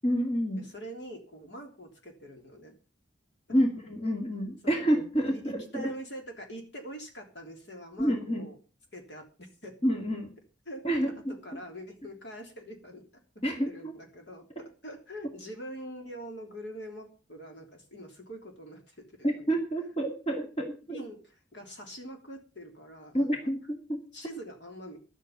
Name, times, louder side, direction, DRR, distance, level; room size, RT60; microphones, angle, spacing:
voice 1, 0.0-0.6 3.5-5.9 8.0-8.5 9.8-10.3 10.8-11.3 13.4-13.7 19.2-21.0 23.1-24.0, equal, 30° left, 2 dB, 2.3 m, -28 dB
voice 2, 0.7-2.7 3.5-3.6 4.6-4.9 5.3-8.5 8.9-9.7 10.6-10.8 11.3-13.0 13.6-14.5 14.8-19.4 20.9-23.5 24.1-25.0, equal, 65° left, 3 dB, 3.3 m, -44 dB
11.5 x 8.4 x 7.2 m, 0.35 s
head